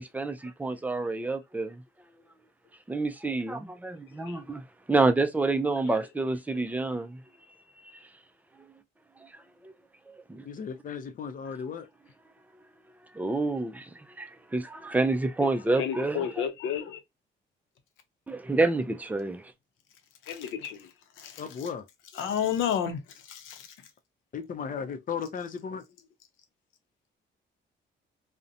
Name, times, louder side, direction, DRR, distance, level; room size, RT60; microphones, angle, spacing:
voice 1, 0.0-1.8 2.9-7.2 7.8-8.1 9.2-9.3 9.6-9.7 10.1-10.5 13.1-16.4 18.3-19.5, right 3 dB, 10° right, 0.4 m, -28 dB
voice 2, 10.4-11.9 21.4-21.9 24.3-25.8, left 6 dB, 45° left, 0.5 m, -35 dB
voice 3, 15.8-17.0 20.3-20.9 21.2-21.4 22.2-23.0 23.3-23.7, left 8 dB, 85° left, 0.6 m, -31 dB
2.5 x 2.1 x 2.6 m
cardioid pair, 90°, 20 cm